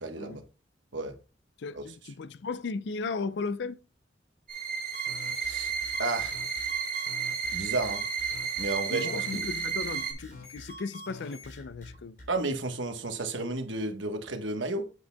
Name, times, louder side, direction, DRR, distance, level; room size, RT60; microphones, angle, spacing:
voice 1, 0.0-0.4 0.9-1.1 1.7-1.8 5.4-5.7 6.0-6.4 7.5-8.0 8.6-9.5 12.3-14.9, right 2 dB, 90° right, 1.2 m, -32 dB
voice 2, 1.6-3.8 8.9-12.2, left 4 dB, 70° left, 0.4 m, -36 dB
sound 1, 4.5-10.1, right 6 dB, 50° right, 1.7 m, -32 dB
sound 2, 4.9-12.3, left 1 dB, 50° left, 3.1 m, -46 dB
8.4 x 7.7 x 2.2 m
head